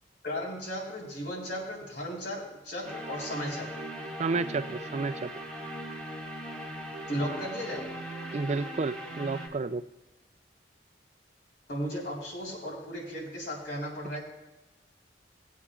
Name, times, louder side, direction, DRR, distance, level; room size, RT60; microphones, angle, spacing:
voice 1, 0.2-3.7 7.1-7.9 11.7-14.2, equal, 65° left, -3 dB, 4.1 m, -35 dB
sound 1, 2.8-9.5, equal, 5° left, 2.0 m, -39 dB
voice 2, 4.2-5.3 8.3-9.8, right 4 dB, 35° right, 12 dB, 0.4 m, -31 dB
19.5 x 8.5 x 2.4 m, 1.0 s
head